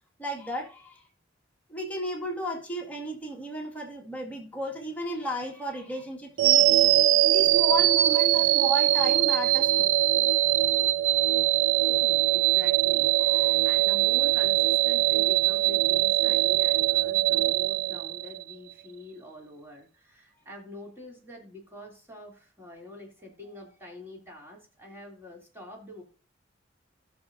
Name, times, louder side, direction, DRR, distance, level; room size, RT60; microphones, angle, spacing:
voice 1, 0.2-1.0 1.7-6.9 7.3-10.0 13.5-13.6, equal, 10° left, 1.9 m, -34 dB
sound 1, 6.4-18.5, right 15 dB, 80° right, 0.4 m, -22 dB
voice 2, 6.6-6.9 7.7-7.9 11.9-26.0, left 1 dB, 10° right, 3.0 m, -45 dB
16.5 x 6.4 x 2.6 m
head